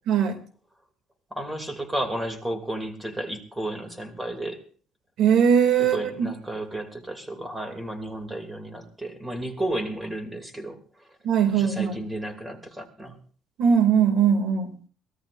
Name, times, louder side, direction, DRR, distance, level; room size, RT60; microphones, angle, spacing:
voice 1, 0.1-0.4 5.2-6.3 11.2-12.0 13.6-14.7, right 7 dB, 65° right, 6 dB, 2.6 m, -20 dB
voice 2, 1.3-4.6 5.8-10.8 11.5-13.2, right 1 dB, 10° right, 5 dB, 2.8 m, -32 dB
23.0 x 17.5 x 2.6 m, 0.42 s
cardioid pair, 120°, 0 cm